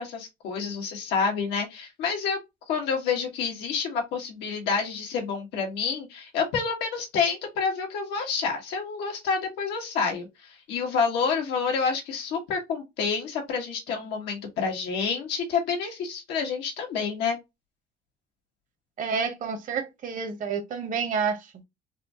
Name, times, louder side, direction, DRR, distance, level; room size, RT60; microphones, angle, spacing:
voice 1, 0.0-2.4 2.7-17.4, left 5 dB, 90° left, 1.4 m, -28 dB
voice 2, 19.0-21.5, right 5 dB, 50° right, 1.0 m, -29 dB
4.1 x 2.3 x 2.8 m
cardioid pair, 110°, 17 cm